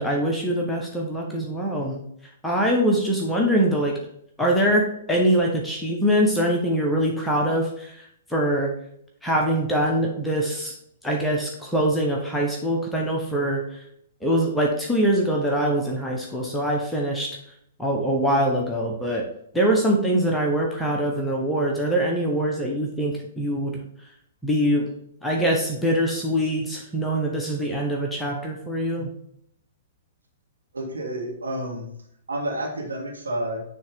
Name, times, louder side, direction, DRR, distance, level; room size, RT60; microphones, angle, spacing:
voice 1, 0.0-2.0 2.4-4.0 4.4-8.7 9.2-10.7 11.0-13.8 14.2-17.3 17.8-19.3 19.5-23.8 24.4-24.9 25.2-29.1, right 1 dB, 5° left, -1 dB, 1.0 m, -23 dB
voice 2, 30.7-31.9 32.3-33.6, right 1 dB, 75° right, -1 dB, 1.9 m, -30 dB
9.8 x 3.3 x 3.7 m, 0.70 s
figure-of-eight pair, 110°, 0 cm